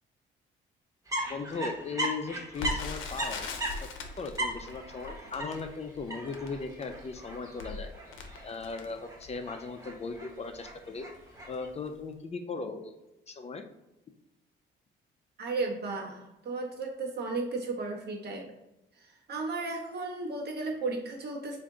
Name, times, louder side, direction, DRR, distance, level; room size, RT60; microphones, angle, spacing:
sound 1, 1.1-11.7, right 1 dB, 15° right, 1.0 m, -38 dB
voice 1, 1.3-3.4 3.8-3.9 4.2-7.9 8.4-11.1 11.5-12.9 13.3-13.6, left 4 dB, 35° left, 6 dB, 0.4 m, -38 dB
Crackle, 2.5-9.5 10.1-10.2 10.5-10.8 11.4-11.6 11.9-12.0, left 3 dB, 80° left, 0.6 m, -41 dB
voice 2, 15.4-18.5 19.0-21.6, right 3 dB, 55° right, 0 dB, 1.0 m, -34 dB
3.5 x 2.6 x 3.7 m, 0.95 s
cardioid pair, 90°, 20 cm